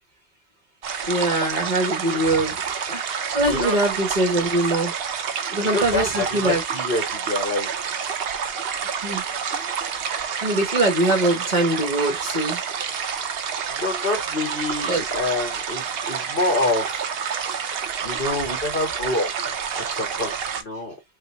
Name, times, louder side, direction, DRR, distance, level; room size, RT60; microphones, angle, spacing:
sound 1, 0.8-20.6, right 7 dB, 70° right, 0.8 m, -28 dB
voice 1, 1.0-2.6 2.9-4.9 5.5-6.6 9.0-9.2 10.4-12.6 14.8-15.0, right 1 dB, 45° right, 1.4 m, -22 dB
voice 2, 5.6-7.7 13.7-16.9 18.0-21.0, left 2 dB, 55° left, 1.8 m, -27 dB
3.4 x 2.9 x 3.0 m
omnidirectional pair, 1.1 m